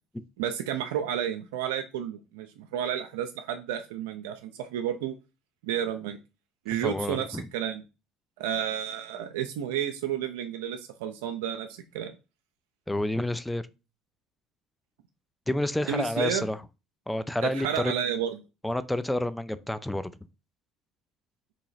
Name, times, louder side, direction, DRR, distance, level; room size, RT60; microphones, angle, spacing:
voice 1, 0.4-5.2 5.6-6.2 6.7-7.3 7.5-7.8 8.4-12.1 15.9-16.5 17.4-18.4, right 9 dB, 85° right, 0.4 m, -31 dB
voice 2, 6.8-7.5 12.9-13.6 15.5-16.6 17.1-17.9 18.6-20.1, left 1 dB, 5° left, 0.4 m, -29 dB
2.9 x 2.8 x 4.0 m
supercardioid pair, 80°, 0 cm